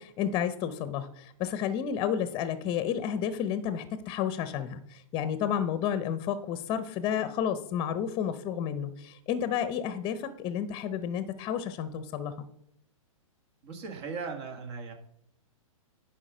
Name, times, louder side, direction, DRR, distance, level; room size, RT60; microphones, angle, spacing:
voice 1, 0.0-12.3, left 9 dB, 30° left, 12 dB, 0.7 m, -31 dB
voice 2, 13.6-14.9, right 5 dB, 50° right, 5 dB, 1.9 m, -38 dB
10.0 x 4.8 x 5.0 m, 0.73 s
hypercardioid pair, 125°, 18 cm